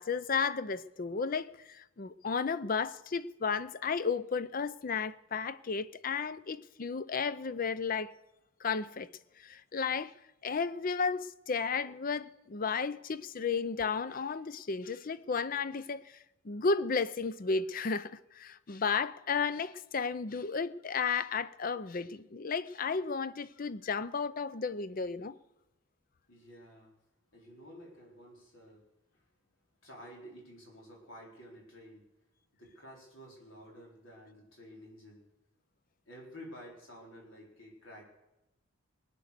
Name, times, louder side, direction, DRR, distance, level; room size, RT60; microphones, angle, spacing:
voice 1, 0.0-8.1 8.6-9.1 9.4-10.1 10.4-16.1 16.4-25.4, left 5 dB, 40° left, 0.5 m, -33 dB
voice 2, 26.3-26.9 27.3-28.8 29.8-32.0 32.6-35.2 36.1-38.0, equal, 70° left, 4.2 m, -51 dB
20.0 x 9.1 x 6.7 m
head